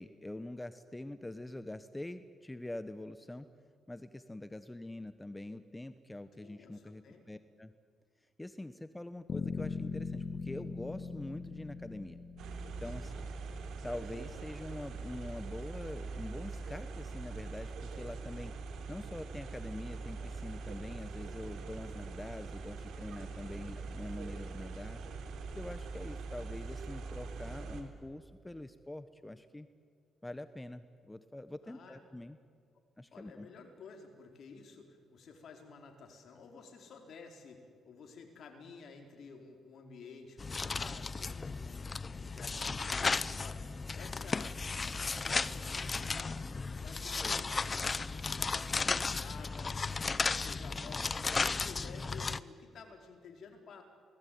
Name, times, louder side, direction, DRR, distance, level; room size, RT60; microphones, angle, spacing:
voice 1, 0.0-3.5 3.9-7.7 8.4-12.2 12.8-13.1 13.8-18.5 18.9-25.0 25.5-29.7 30.2-32.4 33.0-33.5 47.2-47.4, left 1 dB, 10° left, 11 dB, 1.1 m, -44 dB
voice 2, 6.4-7.3 13.0-13.6 23.2-23.7 31.6-32.0 33.1-46.4 46.7-49.7 50.1-53.8, left 5 dB, 60° left, 3 dB, 4.6 m, -52 dB
sound 1, 9.3-13.3, left 5 dB, 45° left, 1.4 m, -40 dB
sound 2, 12.4-27.8, right 4 dB, 75° right, 3.5 m, -43 dB
sound 3, 40.4-52.4, left 4 dB, 30° left, 0.7 m, -35 dB
27.5 x 19.0 x 9.5 m, 2.2 s
cardioid pair, 90°, 0 cm